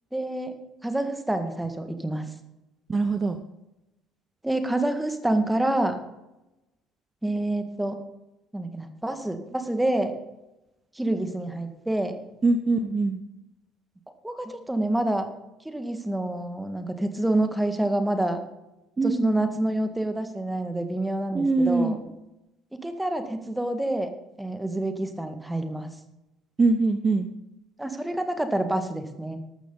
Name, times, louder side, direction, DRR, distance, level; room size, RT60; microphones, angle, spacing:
voice 1, 0.1-0.5 0.8-2.3 4.4-6.0 7.2-8.0 8.5-10.1 11.0-12.1 14.2-15.3 15.7-18.4 19.0-22.0 22.8-24.1 24.4-25.9 27.8-29.4, right 1 dB, 5° right, 7 dB, 1.8 m, -27 dB
voice 2, 2.9-3.4 12.4-13.2 19.0-19.3 21.3-22.0 26.6-27.3, right 3 dB, 25° right, 8 dB, 0.9 m, -23 dB
14.0 x 12.5 x 4.0 m, 0.95 s
figure-of-eight pair, 55°, 0 cm